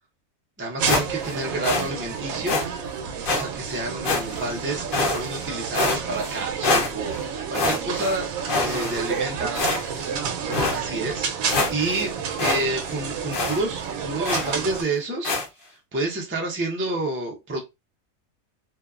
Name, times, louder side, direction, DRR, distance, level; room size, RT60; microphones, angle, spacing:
voice 1, 0.6-2.6 3.3-8.3 8.6-9.6 10.7-12.1 12.4-15.3 15.9-17.6, right 2 dB, 20° right, 0.3 m, -29 dB
sound 1, 0.8-14.8, right 7 dB, 85° right, 1.0 m, -31 dB
sound 2, 0.9-1.4 1.6-1.9 2.5-2.6 3.2-3.4 4.0-4.5 4.9-5.4 5.7-6.3 6.6-7.2 7.5-8.1 8.5-9.2 9.5-10.1 10.5-10.8 11.2-11.3 11.5-12.0 12.4-12.6 12.9-13.0 13.3-13.6 14.2-14.6 15.2-15.5, left 3 dB, 50° left, 0.7 m, -25 dB
voice 2, 8.7-10.7, right 5 dB, 60° right, 0.8 m, -32 dB
2.7 x 2.2 x 2.3 m
omnidirectional pair, 1.4 m